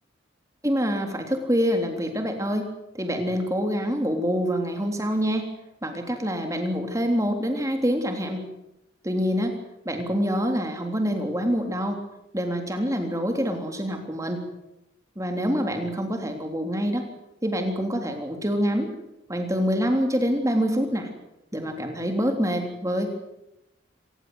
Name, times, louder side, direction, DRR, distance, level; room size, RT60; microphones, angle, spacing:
voice 1, 0.6-2.7 2.9-5.5 5.8-8.4 9.0-9.6 9.9-12.0 12.3-14.4 15.2-17.1 17.4-18.9 19.3-21.1 21.5-23.1, equal, 15° right, 4 dB, 3.5 m, -26 dB
26.0 x 18.5 x 8.0 m, 0.89 s
head